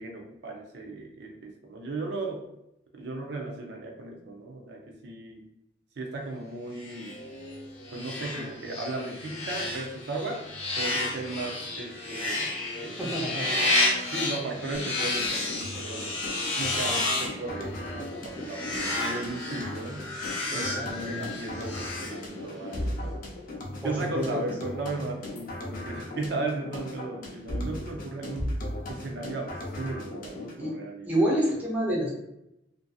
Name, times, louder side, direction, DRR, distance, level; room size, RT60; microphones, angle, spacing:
voice 1, 0.0-2.4 2.9-5.4 6.0-7.1 7.9-10.4 10.8-13.7 14.0-16.1 16.5-20.1 20.5-23.2 23.8-28.5 28.9-31.4, right 2 dB, 65° right, 1 dB, 0.4 m, -36 dB
sound 1, 6.8-22.7, left 2 dB, 65° left, 0.9 m, -31 dB
voice 2, 13.0-13.5 20.5-21.2 23.6-24.2 30.6-30.7 31.0-32.1, right 1 dB, 10° right, -4 dB, 0.6 m, -28 dB
sound 2, 14.7-30.7, left 1 dB, 50° left, 0.5 m, -37 dB
2.6 x 2.5 x 2.3 m, 0.84 s
head